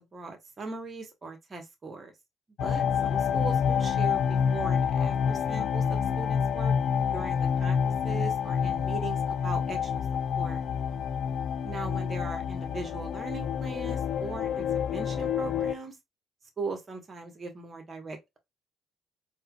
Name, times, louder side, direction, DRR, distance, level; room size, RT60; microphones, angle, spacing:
voice 1, 0.1-2.1 2.6-6.8 7.1-10.1 10.4-10.6 11.6-16.0 16.6-18.4, right 3 dB, 40° right, 1.2 m, -39 dB
sound 1, 2.6-15.7, left 7 dB, 65° left, 0.4 m, -28 dB
4.2 x 2.3 x 2.3 m
hypercardioid pair, 60°, 0 cm